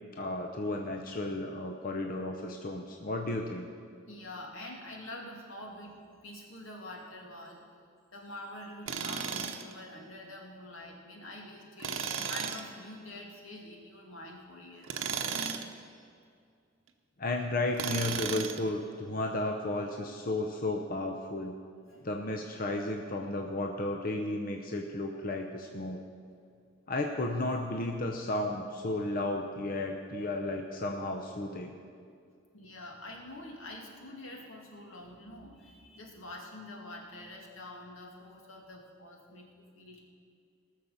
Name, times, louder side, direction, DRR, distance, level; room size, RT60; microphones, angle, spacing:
voice 1, 0.1-3.7 17.2-21.5 22.0-26.0 26.9-31.7, left 2 dB, 45° left, 3 dB, 0.7 m, -33 dB
voice 2, 4.1-6.0 6.2-7.7 8.1-15.1 21.9-22.0 32.5-40.0, left 1 dB, 80° left, 0 dB, 2.3 m, -46 dB
Tools, 8.9-9.7 11.8-12.7 14.8-15.7 17.7-18.7, right 6 dB, 70° right, 0.9 m, -34 dB
19.0 x 6.6 x 7.0 m, 2.3 s
head